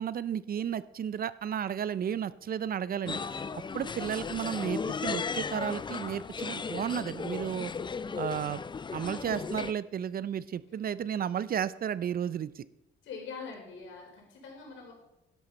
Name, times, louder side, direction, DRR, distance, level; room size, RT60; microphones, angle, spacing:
voice 1, 0.0-3.4 3.7-7.7 8.1-8.6 8.9-12.6, right 9 dB, 50° right, 17 dB, 0.5 m, -33 dB
sound 1, 3.0-9.7, left 5 dB, 25° left, 0.5 m, -36 dB
voice 2, 13.0-14.9, left 5 dB, 80° left, -1 dB, 4.5 m, -43 dB
12.0 x 11.5 x 4.1 m, 0.93 s
cardioid pair, 90°, 20 cm